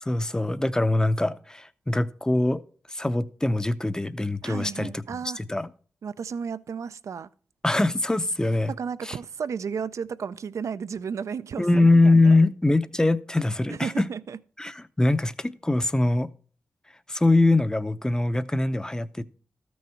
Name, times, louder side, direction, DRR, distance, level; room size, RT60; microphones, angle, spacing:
voice 1, 0.0-2.6 2.9-5.0 5.4-5.7 7.6-8.7 9.0-9.2 11.6-14.1 14.6-16.3 17.1-19.2, left 2 dB, 15° left, 0.6 m, -23 dB
voice 2, 4.4-5.4 6.0-7.3 8.7-12.3 13.7-14.4, right 6 dB, 75° right, 0.4 m, -33 dB
13.0 x 6.3 x 4.4 m
cardioid pair, 70°, 5 cm